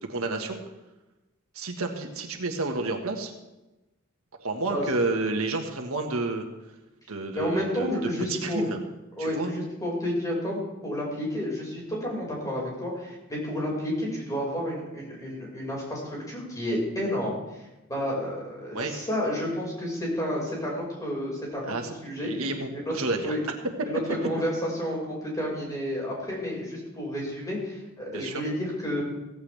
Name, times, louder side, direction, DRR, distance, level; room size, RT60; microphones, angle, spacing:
voice 1, 0.1-0.6 1.5-3.3 4.4-6.4 7.1-7.9 8.3-8.8 9.2-9.5 18.7-18.9 21.7-21.9 22.2-23.3 28.1-28.4, right 3 dB, 85° right, 4 dB, 1.6 m, -30 dB
voice 2, 7.3-8.6 9.2-21.7 22.0-22.3 22.7-22.8 23.2-23.4 23.9-29.0, equal, 15° left, -3 dB, 5.3 m, -31 dB
16.5 x 15.0 x 3.4 m, 1.0 s
head